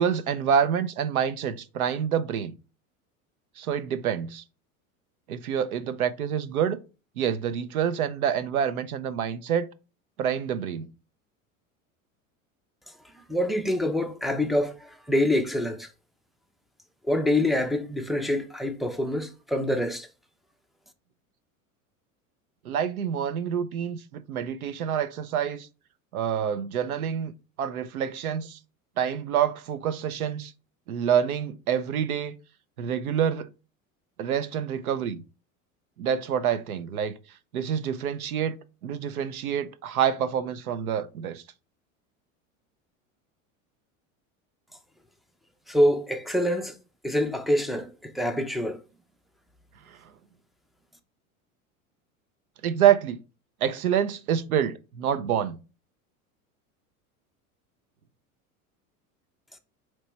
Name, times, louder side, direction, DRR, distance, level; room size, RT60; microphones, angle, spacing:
voice 1, 0.0-2.5 3.6-4.4 5.3-6.8 7.2-9.7 10.2-10.9 22.6-25.7 26.1-27.3 27.6-28.6 29.0-30.5 30.9-32.3 32.8-33.5 34.2-35.2 36.0-37.2 37.5-41.4 49.9-50.0 52.6-53.2 53.6-55.6, right 8 dB, 90° right, 0.6 m, -27 dB
voice 2, 13.3-15.9 17.0-20.1 45.7-46.8 47.0-48.8, left 1 dB, ahead, 0.3 m, -26 dB
4.3 x 3.1 x 3.0 m
hypercardioid pair, 85°, 42 cm